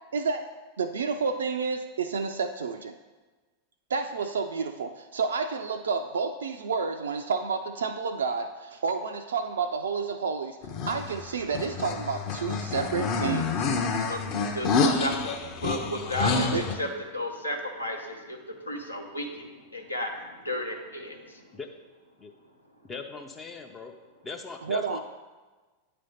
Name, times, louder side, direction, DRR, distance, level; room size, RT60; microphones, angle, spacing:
voice 1, 0.1-0.5 0.8-2.9 3.9-10.6 10.9-13.7 16.5-16.6 24.6-25.0, right 5 dB, 65° right, 7 dB, 0.3 m, -30 dB
sound 1, 10.6-16.7, left 4 dB, 40° left, 0.8 m, -28 dB
voice 2, 14.5-15.3 15.6-18.4 18.6-21.4, equal, 85° left, 3 dB, 0.9 m, -33 dB
voice 3, 22.8-23.9 24.2-25.0, left 4 dB, 20° left, 3 dB, 0.5 m, -39 dB
9.4 x 3.3 x 5.3 m, 1.3 s
figure-of-eight pair, 90°, 0 cm